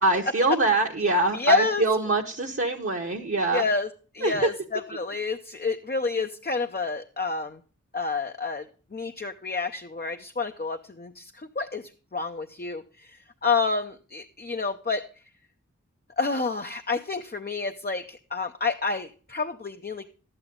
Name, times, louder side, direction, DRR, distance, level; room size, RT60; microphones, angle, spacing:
voice 1, 0.0-3.6 4.2-4.5, right 2 dB, 45° right, 0 dB, 1.0 m, -24 dB
voice 2, 1.3-1.8 3.5-3.9 4.1-7.6 7.9-15.0 16.2-20.1, left 4 dB, 35° left, 6 dB, 0.6 m, -29 dB
11.5 x 9.0 x 3.7 m, 0.39 s
wide cardioid pair, 45°, 30 cm